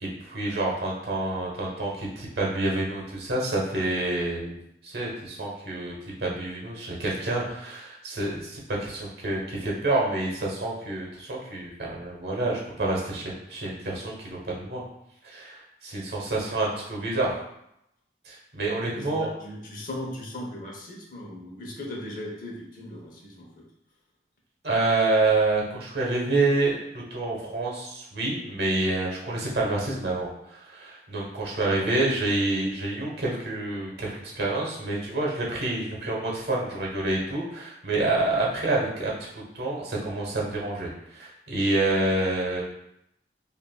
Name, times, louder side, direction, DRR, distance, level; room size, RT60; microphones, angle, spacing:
voice 1, 0.0-4.6 4.8-5.9 6.2-14.8 15.2-17.4 18.2-19.3 24.6-39.1 39.5-42.6, right 2 dB, 65° right, -2 dB, 1.1 m, -28 dB
voice 2, 18.9-23.6, left 1 dB, 50° left, -1 dB, 0.8 m, -38 dB
5.5 x 2.6 x 2.3 m, 0.79 s
head